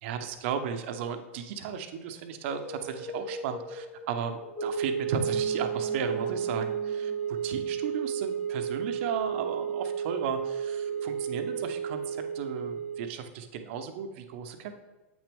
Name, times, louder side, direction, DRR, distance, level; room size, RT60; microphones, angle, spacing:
voice 1, 0.0-14.8, right 7 dB, 55° right, 7 dB, 0.8 m, -35 dB
sound 1, 2.4-13.0, right 7 dB, 25° left, 2.4 m, -33 dB
sound 2, 5.0-8.7 9.0-9.1, left 3 dB, ahead, 0.8 m, -47 dB
8.0 x 6.1 x 3.5 m, 1.1 s
hypercardioid pair, 110°, 8 cm